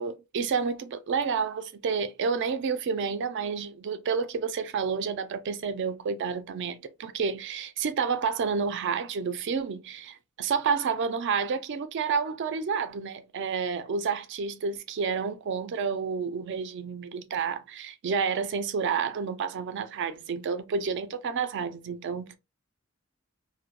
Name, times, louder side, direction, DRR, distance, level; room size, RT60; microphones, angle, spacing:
voice 1, 0.0-22.4, right 5 dB, 60° right, 0.3 m, -30 dB
2.1 x 2.1 x 2.8 m
head